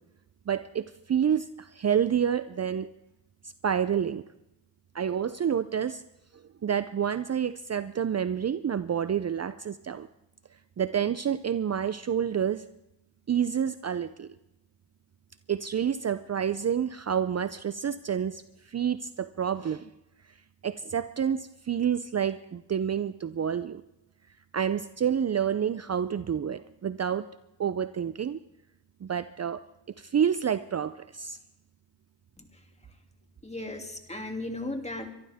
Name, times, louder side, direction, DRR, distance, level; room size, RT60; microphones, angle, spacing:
voice 1, 0.5-2.9 3.4-4.2 4.9-6.0 6.6-10.1 10.8-12.6 13.3-14.3 15.5-18.4 18.7-19.9 20.6-23.8 24.5-27.3 27.6-28.4 29.0-29.6 30.0-31.4, right 8 dB, 40° right, 13 dB, 0.6 m, -28 dB
voice 2, 33.4-35.1, left 2 dB, 15° left, 4 dB, 2.7 m, -36 dB
24.0 x 13.0 x 3.6 m, 0.91 s
cardioid pair, 65°, 42 cm